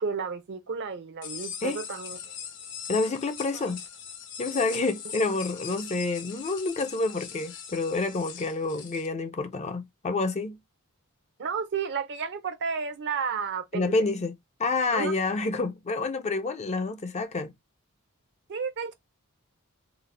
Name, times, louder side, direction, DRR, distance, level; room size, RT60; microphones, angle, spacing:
voice 1, 0.0-2.2 3.5-3.7 11.4-13.9 14.9-15.2 18.5-18.9, right 5 dB, 55° right, 0.6 m, -32 dB
sound 1, 1.2-9.1, left 8 dB, 55° left, 0.8 m, -41 dB
voice 2, 2.9-3.8 4.4-10.6 13.7-14.3 14.6-17.5, left 3 dB, 30° left, 0.4 m, -28 dB
3.8 x 2.1 x 3.3 m
head